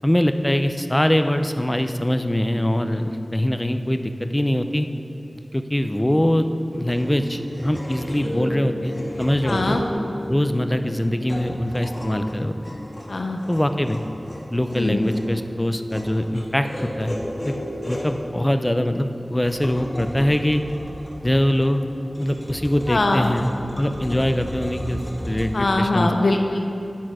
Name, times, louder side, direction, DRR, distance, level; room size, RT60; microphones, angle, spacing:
voice 1, 0.0-4.9 5.5-6.5 6.7-9.8 10.3-12.8 13.5-14.0 14.5-17.2 17.5-17.6 17.9-20.6 21.2-21.8 22.2-25.0 25.3-26.1, left 1 dB, 15° left, 8 dB, 0.4 m, -22 dB
sound 1, 6.7-25.5, equal, 35° left, 1.6 m, -34 dB
voice 2, 9.5-9.8 13.1-13.4 14.7-15.0 22.9-23.3 25.5-26.6, left 2 dB, 80° left, 4 dB, 0.5 m, -22 dB
12.0 x 4.3 x 4.8 m, 2.7 s
wide cardioid pair, 70°, 0 cm